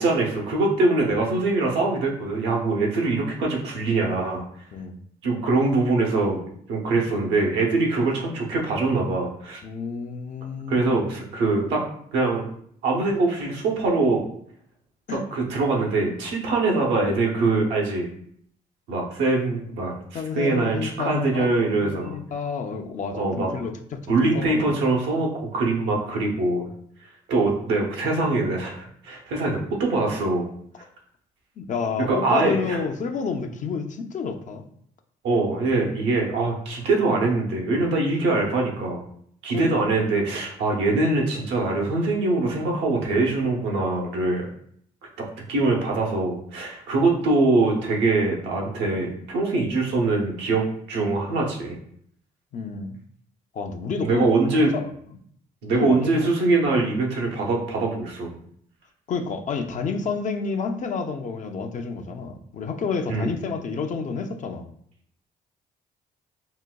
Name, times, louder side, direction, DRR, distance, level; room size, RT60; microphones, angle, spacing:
voice 1, 0.0-4.4 5.2-6.4 6.7-9.6 10.7-11.8 12.1-12.5 12.8-14.3 15.1-18.1 18.9-22.2 23.1-23.5 24.1-26.7 27.3-30.5 32.1-32.8 35.2-39.0 39.4-44.5 45.2-51.8 54.0-54.7 55.6-58.4 63.1-63.3, right 3 dB, 90° right, -1 dB, 0.7 m, -23 dB
voice 2, 9.6-11.1 15.1-15.3 20.1-21.5 21.7-24.0 24.3-24.8 31.6-34.6 39.5-40.0 52.5-53.0 53.5-55.2 55.8-56.1 59.1-64.7, left 5 dB, 45° left, 5 dB, 0.4 m, -30 dB
3.9 x 2.2 x 2.2 m, 0.67 s
cardioid pair, 80°, 18 cm